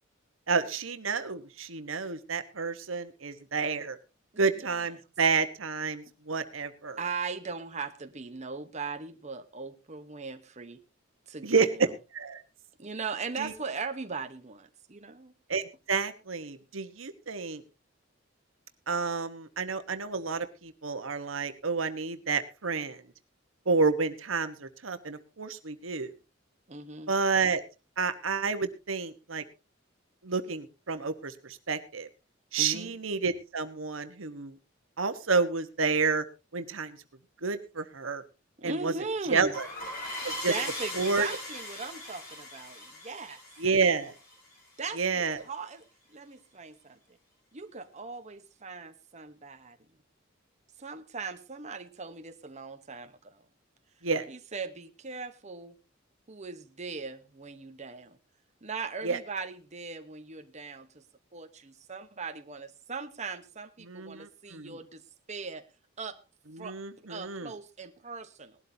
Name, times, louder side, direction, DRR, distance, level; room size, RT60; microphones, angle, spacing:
voice 1, 0.5-4.0 4.4-7.0 11.4-11.7 12.1-12.4 13.4-13.5 15.5-15.6 15.9-17.6 18.9-23.0 23.7-26.1 27.1-27.6 28.0-29.4 30.2-32.1 32.5-34.5 35.0-36.2 36.5-37.0 37.4-38.2 38.6-38.9 39.3-39.7 40.2-40.5 41.0-41.3 43.6-44.1 44.9-45.4 54.0-54.3 59.0-59.2 63.9-64.8 66.5-67.5, right 4 dB, 90° right, 1.3 m, -30 dB
voice 2, 7.0-10.8 11.3-11.9 12.8-15.3 26.7-27.1 32.6-32.9 38.6-39.6 40.2-43.4 44.8-45.8 46.1-47.0 47.5-49.8 50.8-53.4 54.3-55.8 56.3-58.2 58.6-61.0 61.3-65.0 65.3-65.7 66.0-66.2 66.6-66.8 67.1-68.6, right 4 dB, 35° right, 1.1 m, -39 dB
sound 1, 39.5-44.8, left 1 dB, 50° left, 5.4 m, -39 dB
19.5 x 12.5 x 2.8 m
head